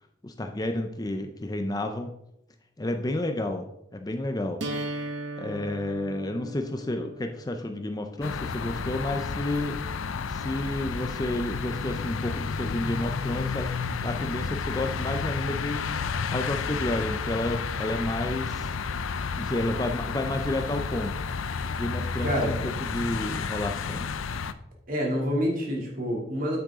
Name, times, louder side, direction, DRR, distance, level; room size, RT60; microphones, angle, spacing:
voice 1, 0.2-2.1 2.8-4.6 5.4-9.8 10.3-13.7 14.0-15.8 16.1-18.7 19.4-21.1 21.7-24.1, left 1 dB, 20° left, 5 dB, 0.5 m, -31 dB
sound 1, 4.6-10.6, right 1 dB, 60° right, 1.3 m, -39 dB
sound 2, 8.2-24.5, left 5 dB, 90° left, 0.5 m, -31 dB
voice 2, 22.2-22.5 24.9-26.6, equal, 45° right, -1 dB, 2.6 m, -27 dB
9.6 x 7.9 x 3.7 m, 0.81 s
head